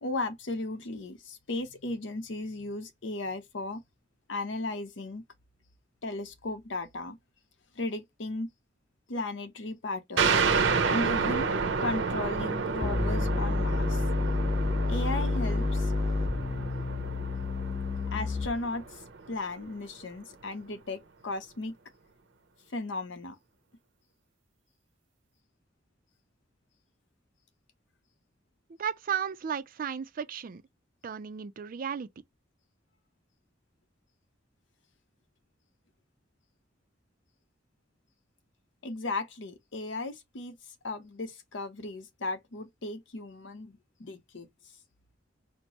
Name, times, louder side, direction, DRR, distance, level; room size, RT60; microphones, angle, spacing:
voice 1, 0.0-3.8 4.3-5.2 6.0-7.2 7.8-8.5 9.1-10.3 10.8-11.5 11.8-14.0 14.9-15.9 18.1-19.0 19.3-21.7 22.7-23.4 38.8-40.6 40.8-43.7 44.0-44.5, left 2 dB, 75° left, 0.8 m, -35 dB
sound 1, 10.2-19.4, right 5 dB, 85° right, 0.7 m, -30 dB
sound 2, 12.8-18.8, left 3 dB, 20° left, 0.4 m, -29 dB
voice 2, 28.8-30.6 31.0-32.1, right 7 dB, 50° right, 0.4 m, -34 dB
4.3 x 2.0 x 2.9 m
head